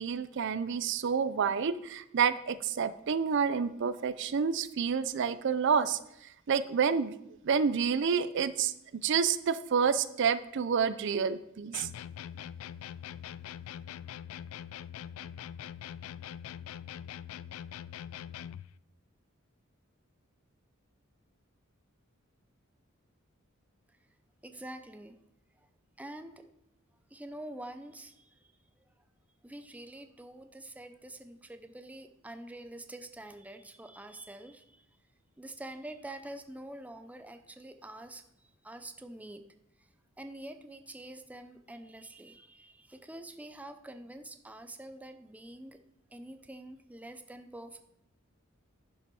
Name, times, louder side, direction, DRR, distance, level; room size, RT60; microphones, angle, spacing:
voice 1, 0.0-6.0 6.5-7.1 7.4-8.7 9.0-11.9, right 6 dB, 60° right, 14 dB, 0.4 m, -29 dB
sound 1, 11.7-18.7, left 9 dB, 80° left, 0.3 m, -43 dB
voice 2, 24.4-25.2 26.0-26.3 27.1-28.5 29.4-34.8 35.4-38.2 38.6-39.4 40.2-45.8 46.1-47.8, right 1 dB, 5° right, 8 dB, 0.6 m, -46 dB
10.5 x 5.5 x 5.4 m, 0.82 s
head